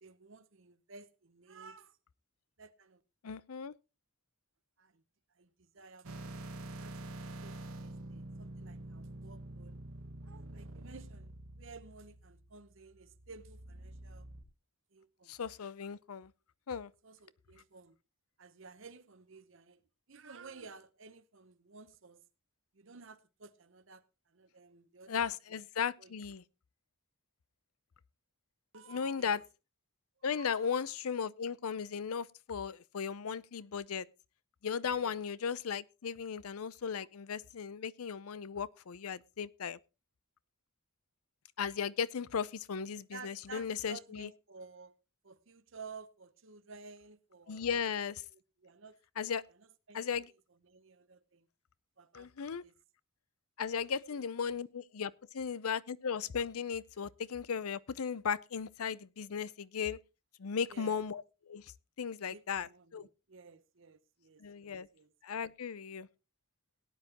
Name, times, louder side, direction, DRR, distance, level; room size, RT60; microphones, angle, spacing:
voice 1, 0.0-2.0 2.6-3.0 4.8-5.0 5.4-6.4 6.8-9.8 10.2-14.3 14.9-15.3 17.0-18.0 18.4-19.8 20.1-22.2 22.7-25.6 26.0-26.1 28.7-29.4 30.3-30.7 34.8-35.2 43.1-44.9 45.2-47.9 48.3-49.0 49.6-50.2 50.6-51.5 52.0-52.7 54.1-54.2 60.7-61.0 62.2-65.1, right 4 dB, 65° right, 0.9 m, -54 dB
voice 2, 3.2-3.7 15.3-16.3 16.7-16.9 25.1-26.4 28.9-29.4 30.2-34.1 34.6-39.8 41.6-44.3 47.5-48.2 49.2-49.4 49.9-50.3 52.1-52.6 53.6-60.0 60.4-61.7 62.0-63.1 64.4-64.9 65.2-66.1, left 6 dB, 90° left, 0.6 m, -36 dB
sound 1, 6.0-14.4, right 1 dB, 85° right, 1.5 m, -47 dB
18.0 x 10.0 x 2.9 m
head